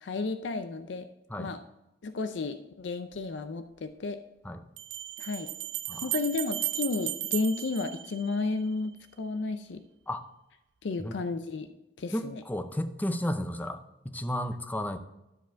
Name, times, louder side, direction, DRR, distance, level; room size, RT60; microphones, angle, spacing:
voice 1, 0.0-1.1 1.4-1.6 2.0-4.2 5.2-5.6 5.9-9.8 10.8-11.7 12.0-12.4, left 3 dB, 80° left, 9 dB, 0.5 m, -32 dB
Bell, 3.1-3.2 4.8-8.7, right 14 dB, 85° right, 0.5 m, -35 dB
voice 2, 12.1-15.0, left 1 dB, 10° left, 9 dB, 0.5 m, -33 dB
12.5 x 5.0 x 4.5 m, 0.94 s
head